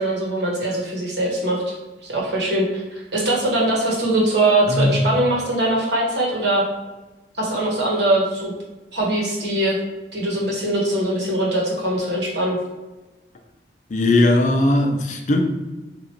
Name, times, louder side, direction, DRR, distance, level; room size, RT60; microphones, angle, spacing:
voice 1, 0.0-1.7 2.0-6.6 7.3-8.5 8.9-9.8 10.1-12.6, right 1 dB, 70° right, 1.2 m, -21 dB
voice 2, 13.9-15.4, left 2 dB, 40° left, 0.4 m, -18 dB
3.0 x 2.5 x 4.4 m
head